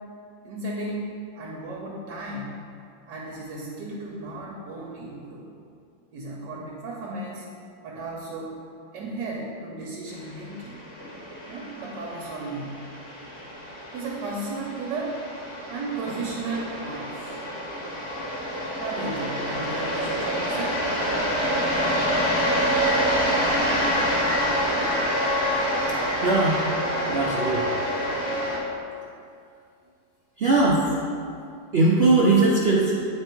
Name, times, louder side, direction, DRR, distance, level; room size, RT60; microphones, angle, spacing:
voice 1, 0.4-1.1 1.3-2.6 3.1-5.5 6.1-7.5 7.8-8.6 8.9-10.8 11.5-12.9 13.9-15.2 15.7-17.3 18.8-20.8, right 2 dB, 65° right, -2 dB, 1.4 m, -34 dB
sound 1, 10.3-28.6, equal, 85° left, 2.6 m, -27 dB
voice 2, 26.2-26.7 27.1-27.7 30.4-31.0 31.7-33.0, right 2 dB, 90° right, -4 dB, 0.5 m, -20 dB
8.9 x 4.4 x 4.5 m, 2.4 s
omnidirectional pair, 2.1 m